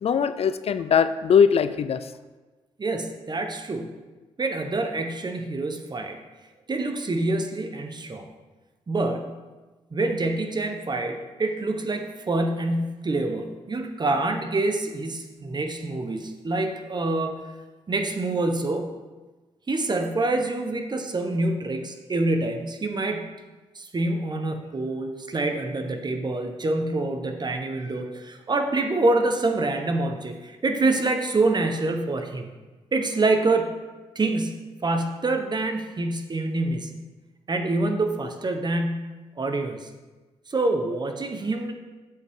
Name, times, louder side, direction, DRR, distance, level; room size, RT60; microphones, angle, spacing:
voice 1, 0.0-2.1, left 7 dB, 55° left, 13 dB, 0.4 m, -21 dB
voice 2, 2.8-3.9 4.4-6.2 6.7-8.3 8.9-9.4 9.9-17.4 17.9-18.9 19.7-23.3 23.7-32.5 32.9-33.7 34.1-36.9 37.5-39.9 40.5-41.7, right 2 dB, 35° right, 6 dB, 1.1 m, -26 dB
7.9 x 7.8 x 3.7 m, 1.2 s
supercardioid pair, 55°, 12 cm